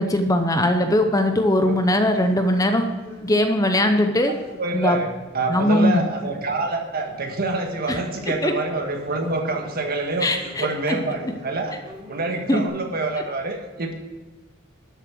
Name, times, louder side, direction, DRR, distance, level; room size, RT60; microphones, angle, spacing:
voice 1, 0.0-2.8 3.2-4.3 4.7-5.0 5.5-6.0 7.9-8.0 8.4-8.5 10.2-11.0 12.5-12.6, left 1 dB, 15° left, 6 dB, 0.8 m, -20 dB
Conversation, 1.5-7.3 7.8-12.7, equal, 30° right, 3.9 m, -44 dB
voice 2, 4.6-5.1 5.3-11.8 12.1-13.9, right 2 dB, 50° right, 3 dB, 1.6 m, -26 dB
12.0 x 7.3 x 6.0 m, 1.3 s
head